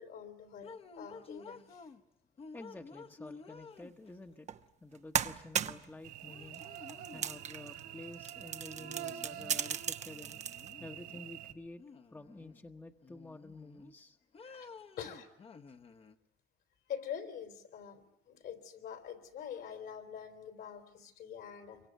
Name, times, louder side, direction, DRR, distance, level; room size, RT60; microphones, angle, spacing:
voice 1, 0.0-1.9 14.4-14.7 15.0-15.3 16.9-21.8, left 8 dB, 70° left, 8 dB, 3.7 m, -45 dB
sound 1, 0.6-2.0 2.4-4.3 5.7-5.8 6.3-7.4 8.7-9.7 10.0-11.3 11.8-12.6 13.0-13.9 14.3-16.1, left 4 dB, 35° left, 1.2 m, -52 dB
voice 2, 2.5-4.5 4.8-6.6 7.1-10.4 10.8-11.8 12.1-14.2, left 2 dB, 10° left, 5 dB, 1.2 m, -50 dB
sound 2, 4.5-4.6 4.9-5.9 6.5-7.8 8.1-10.7, right 8 dB, 45° right, 1.0 m, -36 dB
Cricket / Buzz, 6.0-11.5, right 11 dB, 85° right, 3.3 m, -47 dB
27.0 x 24.0 x 9.3 m, 0.84 s
cardioid pair, 110°, 17 cm